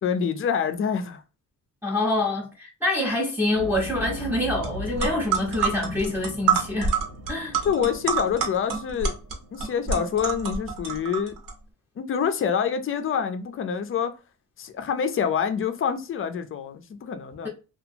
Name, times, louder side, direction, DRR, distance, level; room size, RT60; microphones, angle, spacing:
voice 1, 0.0-1.2 7.6-9.2 9.5-11.4 12.0-14.1 14.6-17.5, left 7 dB, 40° left, 0.4 m, -26 dB
voice 2, 1.8-6.9 7.3-7.6, left 1 dB, 5° right, 0.6 m, -26 dB
sound 1, 3.5-10.4, equal, 45° right, 0.7 m, -39 dB
sound 2, 4.6-4.7 5.0-11.5, right 6 dB, 65° right, 1.0 m, -27 dB
2.8 x 2.4 x 2.6 m
cardioid pair, 145°, 34 cm